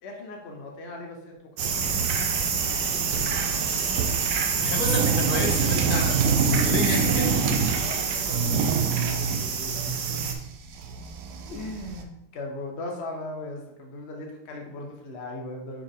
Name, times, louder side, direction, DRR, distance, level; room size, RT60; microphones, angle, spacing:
voice 1, 0.0-2.2 6.9-7.3 7.8-10.3 11.5-15.8, left 1 dB, 65° left, 1 dB, 0.6 m, -39 dB
sound 1, 1.6-10.3, right 6 dB, 65° right, 1.2 m, -27 dB
sound 2, 2.8-4.4 4.8-7.9 8.2-12.0, right 5 dB, 85° right, 0.8 m, -27 dB
voice 2, 4.6-7.3, left 2 dB, 50° left, 0 dB, 1.4 m, -29 dB
6.2 x 4.2 x 3.6 m, 0.82 s
omnidirectional pair, 2.4 m